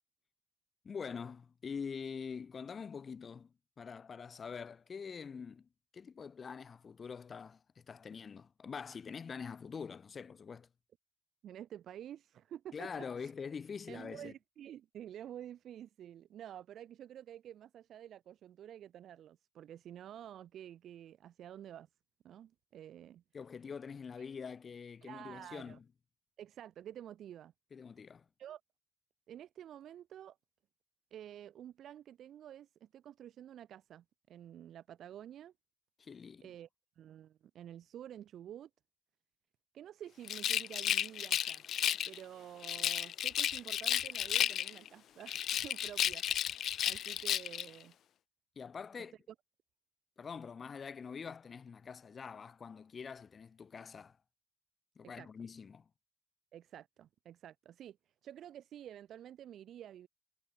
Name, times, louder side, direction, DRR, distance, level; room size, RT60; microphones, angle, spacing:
voice 1, 0.8-10.7 12.7-14.3 23.3-25.8 27.7-28.2 36.0-36.5 48.6-49.1 50.2-54.2 55.0-55.8, left 6 dB, 35° left, 1.0 m, -45 dB
voice 2, 11.4-13.3 13.9-21.9 22.2-23.2 25.0-25.8 26.4-27.5 28.4-28.6 29.3-30.4 31.1-35.5 36.4-36.7 37.0-38.7 39.7-41.6 42.0-47.9 49.0-49.1 55.0-55.3 56.5-58.0 58.2-60.1, right 10 dB, 75° right, 1.4 m, -50 dB
Rattle, 40.2-42.2 42.6-44.9 45.3-47.7, left 10 dB, 70° left, 0.3 m, -33 dB
wide cardioid pair, 180°, 0 cm